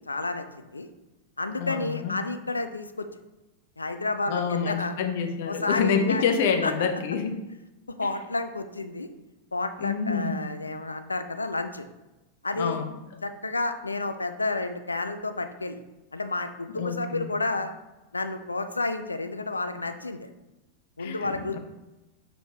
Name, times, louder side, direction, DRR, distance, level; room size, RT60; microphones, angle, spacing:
voice 1, 0.1-0.9 1.4-3.1 3.8-5.0 5.5-6.2 6.6-6.7 8.0-9.1 9.5-11.9 12.4-12.8 13.2-15.8 16.1-17.7 18.1-20.3 21.0-21.6, left 2 dB, 80° left, 9 dB, 0.4 m, -30 dB
voice 2, 1.6-2.2 4.3-7.3 9.8-10.5 12.5-12.9 16.7-17.3 21.0-21.6, left 6 dB, 50° left, 6 dB, 0.8 m, -27 dB
6.5 x 5.1 x 2.9 m, 1.0 s
figure-of-eight pair, 90°, 0 cm